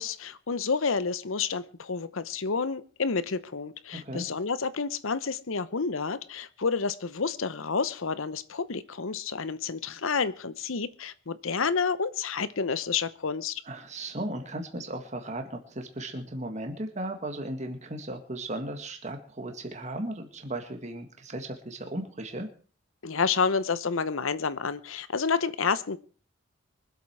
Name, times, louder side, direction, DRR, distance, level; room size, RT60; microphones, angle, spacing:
voice 1, 0.0-13.6 23.0-26.0, left 5 dB, 70° left, 15 dB, 0.8 m, -29 dB
voice 2, 3.9-4.3 13.6-22.5, right 1 dB, 35° right, 5 dB, 1.9 m, -36 dB
24.0 x 8.2 x 4.7 m, 0.41 s
head